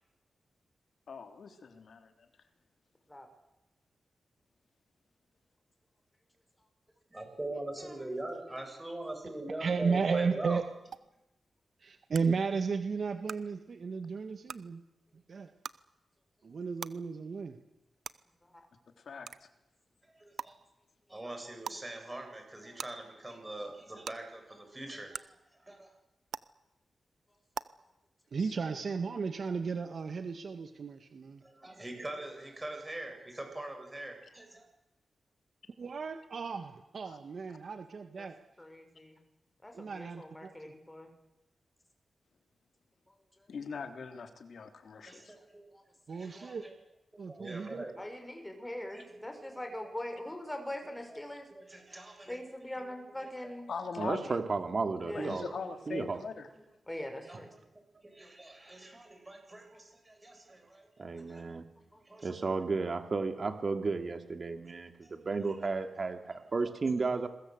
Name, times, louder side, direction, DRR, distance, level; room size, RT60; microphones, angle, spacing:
voice 1, 1.1-2.1 19.0-19.5 28.4-28.5 37.0-37.2 43.5-45.3 53.7-54.4 55.1-56.5, left 5 dB, 75° left, 6 dB, 3.2 m, -41 dB
voice 2, 7.1-10.6 20.1-20.5 21.1-25.9 31.4-34.7 45.0-45.7 46.1-46.7 47.3-48.0 48.5-48.6 48.9-49.9 51.1-51.2 51.5-52.4 52.8-52.9 53.2-53.5 55.8-56.0 56.9-57.5 58.0-61.4 62.0-62.5 65.0-65.1 66.3-66.4, right 1 dB, 20° right, 4 dB, 7.9 m, -43 dB
voice 3, 9.6-10.6 11.8-14.8 15.3-15.5 16.4-17.6 28.3-31.4 35.8-38.3 39.8-40.5 46.1-46.6 47.2-47.8, right 5 dB, 65° right, 7 dB, 1.8 m, -34 dB
sound 1, 10.9-11.0 12.1-12.2 13.3-13.4 14.5-14.6 15.6-15.8 16.8-16.9 18.0-18.1 19.3-19.4 20.4-20.5 21.6-21.8 22.8-22.9 24.0-24.1 25.1-25.2 26.3-26.4 27.5-27.6, right 7 dB, 80° right, 0.8 m, -39 dB
voice 4, 38.6-39.2 39.6-41.1 43.4-43.5 45.4-45.5 45.7-45.8 47.2-47.3 48.0-51.5 52.3-53.7 55.0-55.4 56.9-57.5 61.3-61.4 61.9-62.0, left 1 dB, 15° left, 5 dB, 6.1 m, -42 dB
voice 5, 54.0-55.5 55.9-56.2 57.3-57.4 61.0-61.7 62.2-67.3, right 4 dB, 50° right, 7 dB, 2.7 m, -33 dB
27.5 x 22.0 x 8.1 m, 0.96 s
cardioid pair, 80°, 0 cm